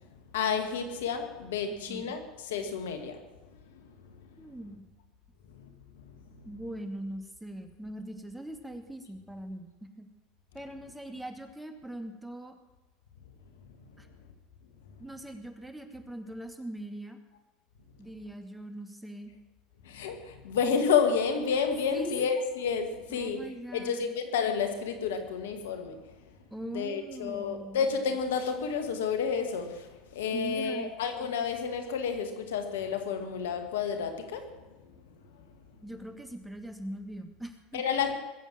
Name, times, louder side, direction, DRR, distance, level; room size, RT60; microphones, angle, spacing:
voice 1, 0.3-3.3 3.7-3.8 5.5-5.7 6.0-6.5 19.8-23.5 23.7-26.2 26.7-34.9 35.4-35.5 37.7-38.1, left 6 dB, 80° left, 2.2 m, -30 dB
voice 2, 1.7-2.2 4.4-4.9 6.4-10.1 10.5-12.6 14.0-14.1 15.0-17.2 18.0-19.3 21.9-22.3 23.1-24.1 26.5-27.8 30.3-30.9 35.8-37.8, right 1 dB, 5° right, 2.5 m, -41 dB
21.5 x 8.1 x 7.6 m
hypercardioid pair, 85°, 0 cm